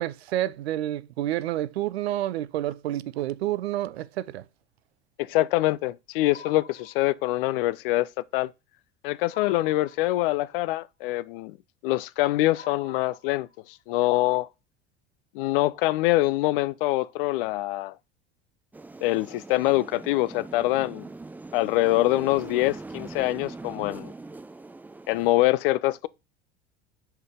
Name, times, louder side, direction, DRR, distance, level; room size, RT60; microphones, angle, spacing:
voice 1, 0.0-4.4, right 13 dB, 70° right, 0.5 m, -29 dB
voice 2, 5.2-8.5 9.0-11.6 11.8-14.5 15.3-17.9 19.0-21.1 21.5-24.1 25.1-26.1, left 18 dB, 55° left, 0.5 m, -24 dB
sound 1, 6.3-7.5 9.3-10.5 12.5-13.8, left 4 dB, 90° left, 1.2 m, -48 dB
sound 2, 18.7-25.3, right 3 dB, 5° right, 0.4 m, -41 dB
5.1 x 4.5 x 4.9 m
figure-of-eight pair, 70°, 33 cm